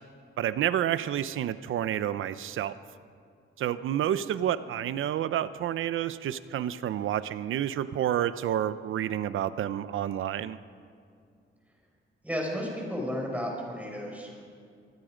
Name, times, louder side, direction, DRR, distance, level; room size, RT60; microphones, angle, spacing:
voice 1, 0.4-2.8 3.6-10.6, right 11 dB, 85° right, 14 dB, 0.8 m, -29 dB
voice 2, 12.2-14.4, equal, 5° right, -1 dB, 5.9 m, -33 dB
27.0 x 20.0 x 5.1 m, 2.3 s
cardioid pair, 125°, 20 cm